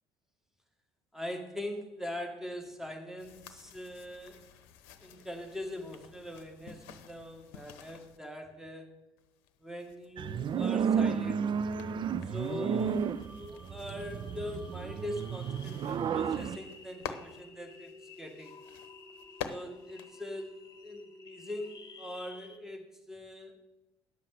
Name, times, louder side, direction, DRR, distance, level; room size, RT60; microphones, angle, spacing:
voice 1, 1.1-4.4 5.0-8.9 9.6-11.5 12.2-18.6 19.5-23.6, left 1 dB, 5° right, 4 dB, 1.9 m, -42 dB
sound 1, 3.2-8.2 9.2-21.0, left 8 dB, 65° left, 0.8 m, -50 dB
sound 2, 10.2-16.6, right 7 dB, 40° right, 0.5 m, -32 dB
sound 3, 12.3-22.6, left 2 dB, 30° left, 1.5 m, -52 dB
9.9 x 7.4 x 6.7 m, 1.0 s
figure-of-eight pair, 55°, 13 cm